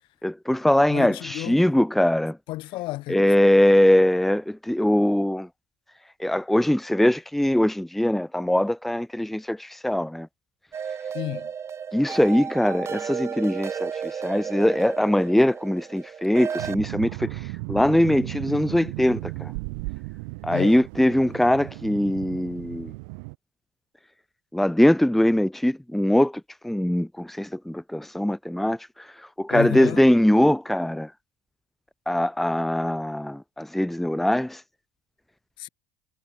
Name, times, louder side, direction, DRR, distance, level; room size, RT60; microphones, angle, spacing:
voice 1, 0.2-2.4 3.1-5.5 6.2-10.3 11.9-19.5 20.4-22.9 24.5-31.1 32.1-34.6, left 1 dB, ahead, 1.0 m, -22 dB
voice 2, 0.9-1.6 2.5-3.3 11.1-11.5 20.5-20.8 29.5-30.0 35.6-35.7, left 18 dB, 60° left, 1.7 m, -31 dB
sound 1, 10.7-16.8, right 7 dB, 30° right, 1.8 m, -33 dB
sound 2, 16.6-23.4, right 32 dB, 80° right, 1.0 m, -35 dB
supercardioid pair, 125°, 10 cm